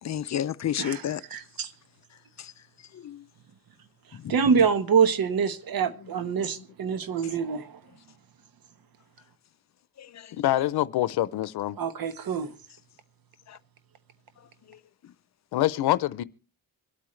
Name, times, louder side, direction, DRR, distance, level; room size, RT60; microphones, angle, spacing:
voice 1, 0.0-1.2 2.4-2.5 2.9-3.2 4.1-4.3 10.0-10.3 13.5-13.6 14.7-14.8, left 10 dB, 45° left, 0.6 m, -32 dB
voice 2, 1.3-1.7 4.3-7.8 11.8-12.5, right 6 dB, 65° right, 1.2 m, -25 dB
voice 3, 10.3-11.8 15.5-16.2, left 14 dB, 90° left, 0.7 m, -25 dB
25.5 x 8.6 x 3.2 m
cardioid pair, 110°, 38 cm